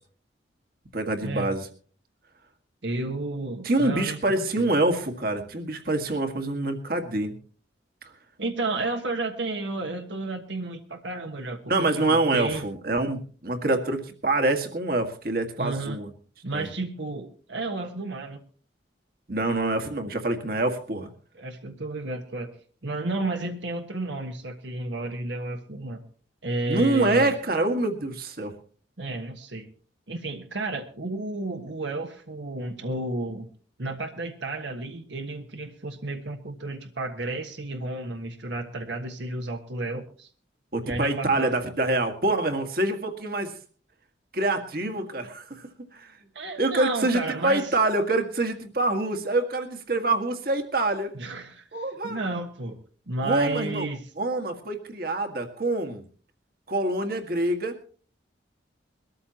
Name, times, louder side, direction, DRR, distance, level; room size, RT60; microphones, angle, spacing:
voice 1, 0.9-1.7 3.6-7.3 11.7-16.1 16.5-16.7 19.3-21.1 26.7-28.6 40.7-43.5 44.3-46.1 46.6-51.2 51.7-52.2 53.2-53.9 54.2-56.0 56.7-57.9, right 2 dB, 50° right, 6 dB, 1.9 m, -26 dB
voice 2, 2.8-4.7 8.4-12.6 15.6-16.0 16.4-18.4 21.3-22.6 22.8-26.0 26.4-27.4 29.0-29.7 30.1-33.5 33.8-40.3 40.8-41.5 44.8-45.0 46.3-47.7 51.1-52.8 53.1-54.1, right 2 dB, 70° right, 5 dB, 1.5 m, -32 dB
22.5 x 13.5 x 3.0 m, 0.41 s
head